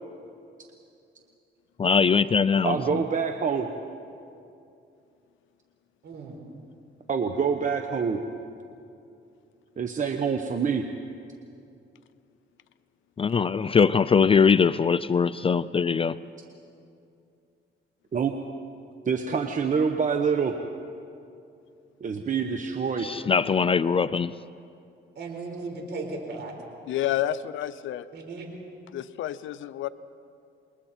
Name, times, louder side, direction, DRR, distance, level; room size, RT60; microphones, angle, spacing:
voice 1, 1.8-3.0 13.2-16.2 23.0-24.3, left 6 dB, 30° left, 15 dB, 0.4 m, -22 dB
voice 2, 2.6-3.7 7.1-8.2 9.8-10.8 18.1-18.3 19.0-20.6 22.0-23.1, right 6 dB, 40° right, 5 dB, 1.1 m, -26 dB
voice 3, 6.0-6.4 25.2-26.5 28.1-28.5, right 3 dB, 60° right, 2 dB, 4.5 m, -36 dB
voice 4, 26.9-28.1 28.9-29.9, left 12 dB, 80° left, 15 dB, 0.7 m, -29 dB
28.0 x 21.5 x 4.4 m, 2.6 s
cardioid pair, 90°, 20 cm